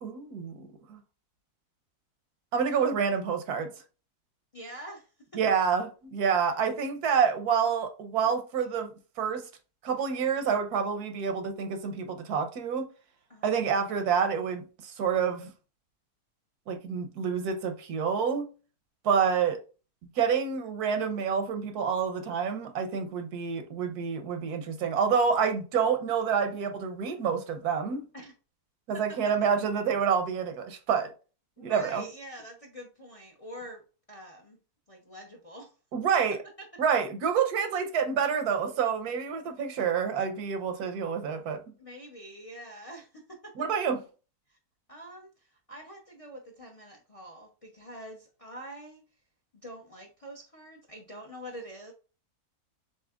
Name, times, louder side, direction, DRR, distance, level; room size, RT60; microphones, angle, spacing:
voice 1, 0.0-1.0 2.5-3.7 5.3-8.9 9.2-9.4 9.8-12.9 13.4-15.5 16.7-18.5 19.0-19.6 20.2-28.0 28.9-31.1 31.6-32.0 35.9-36.4 36.8-41.6 43.6-44.0, right 6 dB, 80° right, 1.3 m, -28 dB
voice 2, 4.5-5.1 6.4-6.5 13.3-13.5 28.1-28.3 28.9-29.2 31.6-33.8 34.1-34.6 34.9-35.7 41.8-43.5 44.5-44.6 44.9-49.0 49.6-51.9, equal, 35° left, 0.6 m, -45 dB
7.1 x 2.7 x 2.4 m
omnidirectional pair, 1.6 m